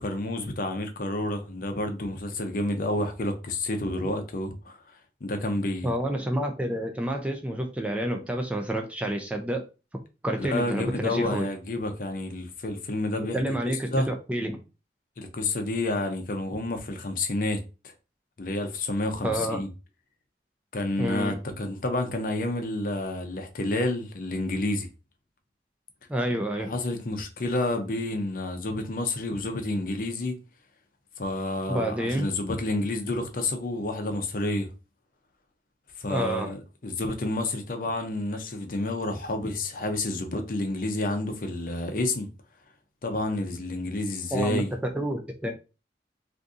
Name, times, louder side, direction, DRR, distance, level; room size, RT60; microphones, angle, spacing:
voice 1, 0.0-4.8 5.2-5.9 10.4-13.4 13.9-14.1 15.2-17.9 18.4-19.7 20.7-24.9 26.7-30.4 31.2-34.7 36.0-42.3 43.0-44.7, left 2 dB, 50° left, 0.6 m, -29 dB
voice 2, 5.8-9.6 10.2-11.5 13.2-14.6 19.2-19.6 21.0-21.4 26.1-26.7 31.7-32.3 36.1-36.5 44.3-44.6 44.9-45.5, right 1 dB, 5° right, 0.3 m, -29 dB
2.6 x 2.6 x 3.5 m
head